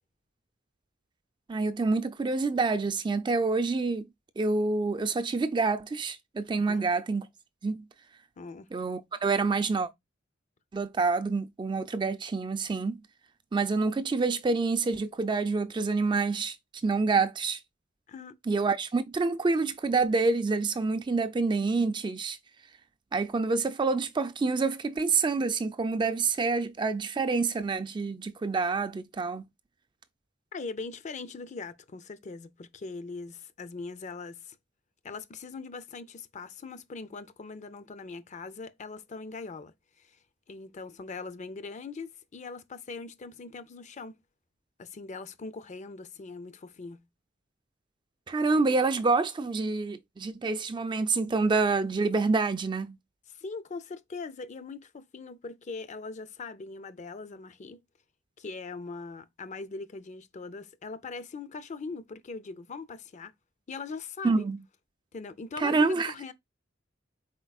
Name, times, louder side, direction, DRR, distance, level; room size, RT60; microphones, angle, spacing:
voice 1, 1.5-4.1 4.4-7.3 7.6-7.8 8.7-9.9 10.7-13.0 13.5-16.6 16.8-17.6 18.5-22.4 23.1-29.4 48.3-53.0 64.2-64.6 65.6-66.1, right 4 dB, 25° right, 0.4 m, -27 dB
voice 2, 8.4-8.7 18.1-18.4 30.5-34.6 35.0-40.2 40.5-44.2 44.8-47.1 53.3-57.8 58.4-63.3 63.7-64.5 65.1-66.3, left 4 dB, 40° left, 0.5 m, -41 dB
4.4 x 4.0 x 2.3 m
head